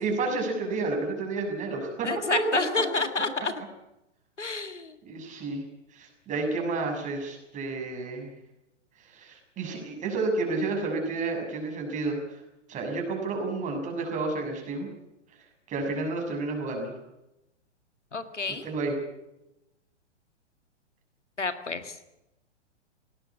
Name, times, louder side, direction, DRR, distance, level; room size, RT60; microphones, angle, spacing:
voice 1, 0.0-2.6 5.0-5.6 5.9-8.3 9.0-12.4 12.7-14.9 15.7-17.0 18.5-19.0, right 3 dB, 20° right, 2 dB, 6.6 m, -30 dB
voice 2, 2.0-3.5 4.4-4.9 18.1-18.7 21.4-22.0, left 3 dB, 85° left, 10 dB, 2.0 m, -29 dB
19.5 x 18.0 x 8.5 m, 0.91 s
figure-of-eight pair, 115°, 35 cm